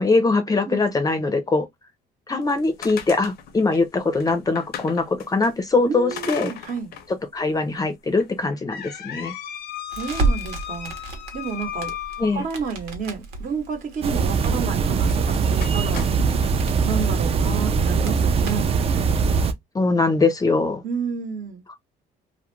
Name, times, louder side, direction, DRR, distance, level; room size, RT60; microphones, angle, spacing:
voice 1, 0.0-1.7 2.3-6.5 7.3-9.3 12.2-12.4 19.7-20.8, left 3 dB, 20° left, 0.5 m, -22 dB
sound 1, 2.4-5.5 6.1-7.1 7.5-7.6 8.2-12.9 15.0-15.2 15.6-16.5, left 10 dB, 65° left, 0.6 m, -36 dB
voice 2, 5.8-6.9 10.0-10.9 11.3-11.9 12.2-16.1 16.8-18.8 20.8-21.6, right 5 dB, 50° right, 0.9 m, -30 dB
Crackle, 9.9-18.8, right 3 dB, 80° right, 1.0 m, -32 dB
sound 2, 14.0-19.5, right 5 dB, 35° right, 0.4 m, -21 dB
2.4 x 2.0 x 3.0 m
cardioid pair, 110°, 17 cm